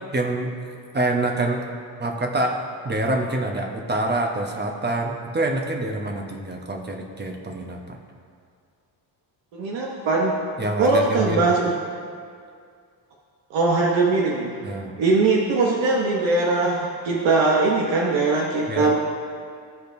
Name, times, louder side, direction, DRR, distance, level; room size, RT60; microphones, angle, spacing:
voice 1, 0.1-0.6 0.9-1.6 2.0-8.0 10.6-11.5 14.6-14.9 18.7-18.9, right 2 dB, 25° right, 2 dB, 0.9 m, -26 dB
voice 2, 9.5-10.4 10.8-11.7 13.5-14.5 15.0-19.0, right 3 dB, 85° right, -2 dB, 1.0 m, -21 dB
15.5 x 5.1 x 2.6 m, 2.2 s
cardioid pair, 120°, 45 cm